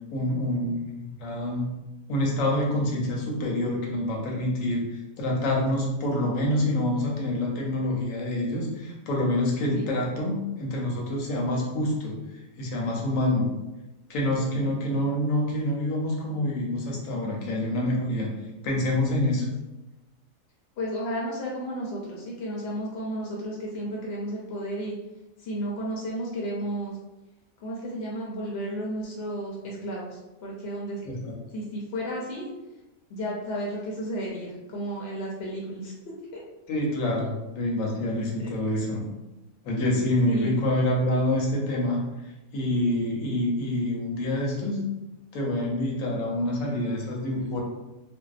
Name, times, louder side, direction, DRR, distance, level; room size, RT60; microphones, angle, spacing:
voice 1, 0.1-1.7 2.1-12.2 12.6-13.5 14.1-18.3 18.6-19.5 31.0-31.3 36.7-39.1 39.6-42.0 42.5-44.9 45.3-47.6, left 1 dB, 80° left, -2 dB, 1.0 m, -26 dB
voice 2, 20.8-24.9 25.4-27.0 27.6-31.0 31.5-32.5 33.1-35.9 36.3-36.4 38.4-38.5 40.3-40.5, equal, 60° left, -4 dB, 0.7 m, -33 dB
2.6 x 2.1 x 2.3 m, 1.0 s
omnidirectional pair, 1.4 m